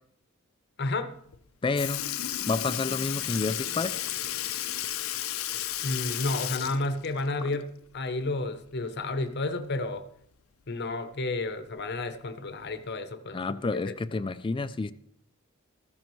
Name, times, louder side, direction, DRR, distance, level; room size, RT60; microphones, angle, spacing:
voice 1, 0.8-1.2 5.8-10.0 10.7-13.9, left 2 dB, 55° left, 9 dB, 0.8 m, -31 dB
Sink (filling or washing) / Liquid, 1.3-1.4 1.8-7.9 8.2-8.3 9.9-10.0 10.9-11.0 11.8-12.0 12.8-12.9, left 12 dB, 80° left, 0.6 m, -33 dB
voice 2, 1.6-2.1 2.5-4.0 13.3-14.9, left 3 dB, 25° left, 13 dB, 0.3 m, -29 dB
14.0 x 14.0 x 3.1 m, 0.71 s
head